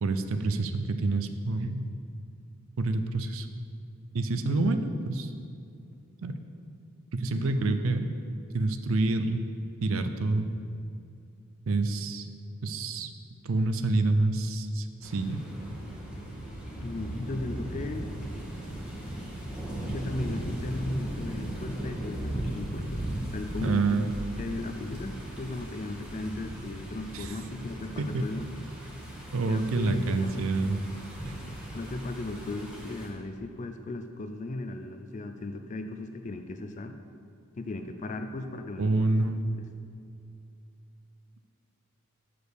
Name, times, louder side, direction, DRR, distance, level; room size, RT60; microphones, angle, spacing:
voice 1, 0.0-1.9 2.8-3.5 4.1-5.3 6.2-6.4 7.1-8.1 8.5-9.4 9.8-10.5 11.7-12.3 12.6-13.1 13.4-15.4 23.6-24.0 27.1-27.3 28.1-28.2 29.3-30.8 31.2-31.3 38.8-39.4, right 3 dB, 65° right, 9 dB, 0.5 m, -27 dB
voice 2, 7.3-7.9 16.7-18.2 19.9-23.0 23.3-24.1 24.4-28.5 29.5-30.5 31.2-31.3 31.7-37.0 37.6-39.2 39.6-39.7, left 2 dB, 35° left, 7 dB, 0.4 m, -36 dB
sound 1, 15.0-33.1, right 1 dB, 5° right, 1.0 m, -38 dB
6.2 x 5.0 x 6.8 m, 2.5 s
head